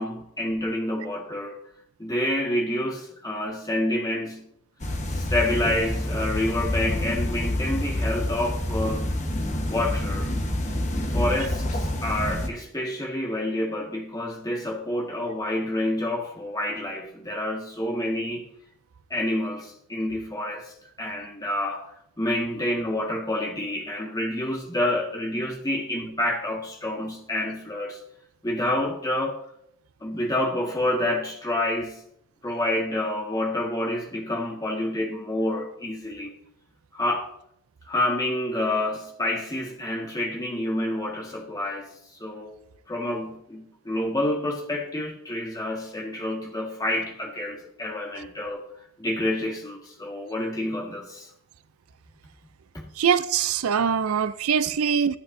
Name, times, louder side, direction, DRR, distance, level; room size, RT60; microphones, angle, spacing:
voice 1, 0.0-1.6 2.0-4.4 5.1-9.1 9.7-10.3 11.1-18.5 19.1-21.9 22.2-28.0 28.4-29.4 30.0-32.0 32.4-36.3 36.9-37.3 37.9-41.9 42.2-42.5 42.9-48.6 49.0-51.3 52.7-52.8, left 1 dB, 15° left, 1.7 m, -28 dB
sound 1, 4.8-12.5, left 1 dB, 30° left, 1.2 m, -27 dB
voice 2, 53.0-55.2, right 7 dB, 70° right, 0.5 m, -23 dB
14.0 x 8.8 x 2.7 m
head